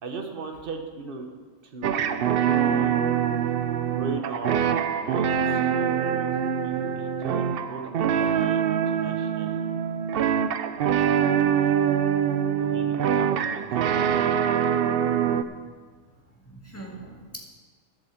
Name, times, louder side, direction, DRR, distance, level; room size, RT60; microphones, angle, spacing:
voice 1, 0.0-1.2 1.7-3.0 3.8-6.3 6.6-9.6 12.6-14.2, right 2 dB, 45° right, 4 dB, 1.3 m, -38 dB
sound 1, 1.8-15.4, right 8 dB, 60° right, 0.6 m, -24 dB
voice 2, 10.8-11.1 11.9-12.1 15.0-15.6 16.4-17.5, right 2 dB, 10° left, -2 dB, 2.0 m, -44 dB
11.0 x 7.9 x 7.2 m, 1.5 s
omnidirectional pair, 1.4 m